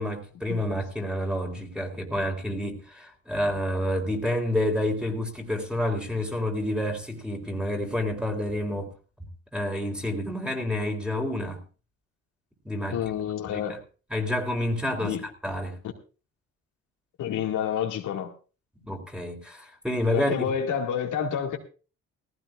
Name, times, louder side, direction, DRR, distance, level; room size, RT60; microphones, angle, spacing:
voice 1, 0.0-8.9 9.5-11.6 12.6-13.0 13.5-13.8 14.1-15.8 18.8-20.3, left 1 dB, 5° right, 3.5 m, -29 dB
voice 2, 12.9-13.7 15.0-15.2 17.2-18.3 20.1-21.6, left 8 dB, 80° left, 2.2 m, -28 dB
18.5 x 15.5 x 2.5 m
cardioid pair, 90°, 30 cm